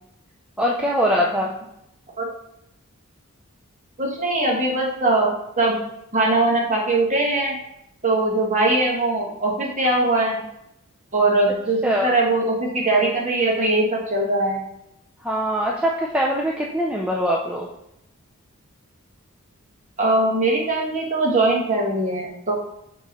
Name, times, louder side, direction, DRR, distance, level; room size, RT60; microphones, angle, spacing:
voice 1, 0.6-1.5 11.8-12.1 15.2-17.7, equal, 5° right, -2 dB, 0.4 m, -22 dB
voice 2, 4.0-5.8 6.1-7.5 8.0-10.4 11.1-14.6 20.0-22.5, right 2 dB, 35° right, -2 dB, 1.3 m, -21 dB
6.3 x 3.0 x 5.3 m, 0.81 s
head